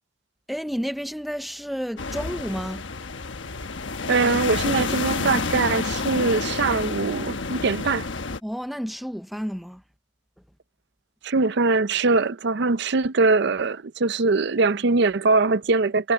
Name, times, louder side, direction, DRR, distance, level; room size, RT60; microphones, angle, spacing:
voice 1, 0.5-2.9 8.4-9.8, equal, ahead, 0.5 m, -31 dB
sound 1, 2.0-8.4, left 4 dB, 70° left, 1.2 m, -29 dB
voice 2, 4.1-8.1 11.2-16.1, right 3 dB, 60° right, 0.6 m, -22 dB
head